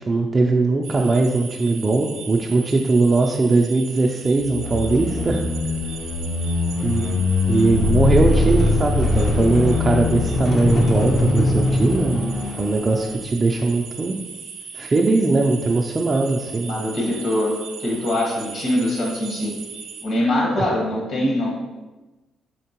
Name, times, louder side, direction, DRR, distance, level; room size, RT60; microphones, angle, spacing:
voice 1, 0.1-5.4 6.8-7.1 7.5-12.3 12.6-14.2 14.7-16.9 20.6-20.7, right 3 dB, 30° right, 1 dB, 0.3 m, -20 dB
sound 1, 0.8-20.1, right 6 dB, 80° right, 0.5 m, -38 dB
sound 2, 4.4-13.2, left 2 dB, 50° left, 0.5 m, -21 dB
voice 2, 16.6-19.5 20.0-21.5, left 1 dB, 65° left, -2 dB, 1.4 m, -23 dB
4.4 x 2.9 x 2.9 m, 1.1 s
cardioid pair, 90°, 0 cm